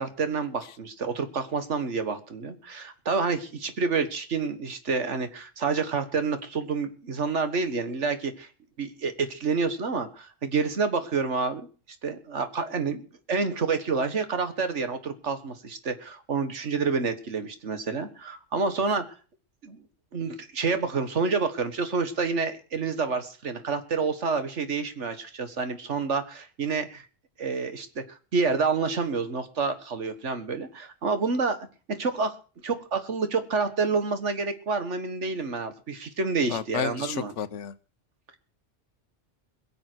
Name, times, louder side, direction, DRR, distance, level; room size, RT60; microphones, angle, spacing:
voice 1, 0.0-8.5 8.8-11.7 12.0-19.1 19.6-19.8 20.1-27.1 27.4-28.0 28.3-31.6 31.9-32.4 32.6-37.3, right 4 dB, 70° right, 10 dB, 1.9 m, -28 dB
voice 2, 36.5-37.7, left 8 dB, 75° left, 15 dB, 1.2 m, -31 dB
21.5 x 7.8 x 6.2 m, 0.39 s
omnidirectional pair, 1.3 m